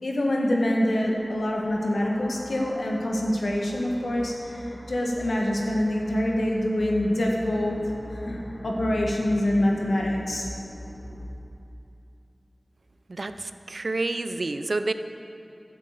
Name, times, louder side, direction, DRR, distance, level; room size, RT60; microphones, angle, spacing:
voice 1, 0.0-7.8 8.1-10.5, left 1 dB, 90° left, -1 dB, 1.7 m, -25 dB
sound 1, 0.9-11.3, equal, 70° left, 1.9 m, -42 dB
voice 2, 13.1-14.9, right 2 dB, 70° right, 10 dB, 0.5 m, -29 dB
11.0 x 7.7 x 7.6 m, 2.8 s
wide cardioid pair, 40°, 0 cm